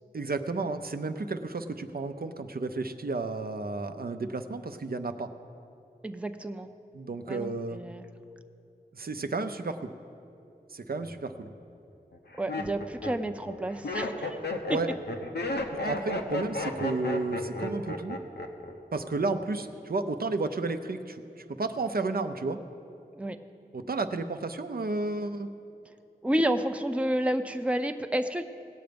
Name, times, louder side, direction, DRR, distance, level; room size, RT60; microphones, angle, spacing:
voice 1, 0.1-5.3 6.9-7.8 8.9-9.9 10.7-11.5 14.7-14.9 15.7-18.2 18.9-22.6 23.7-25.5, right 3 dB, 65° right, 8 dB, 0.6 m, -32 dB
voice 2, 6.0-6.7 7.3-8.0 12.4-14.4 23.1-23.4 26.2-28.4, right 1 dB, 5° right, 7 dB, 0.5 m, -30 dB
Laughter, 11.1-11.5 12.1-18.7 19.0-19.5, left 2 dB, 90° left, 0.9 m, -33 dB
18.0 x 7.8 x 5.2 m, 2.7 s
wide cardioid pair, 60°, 17 cm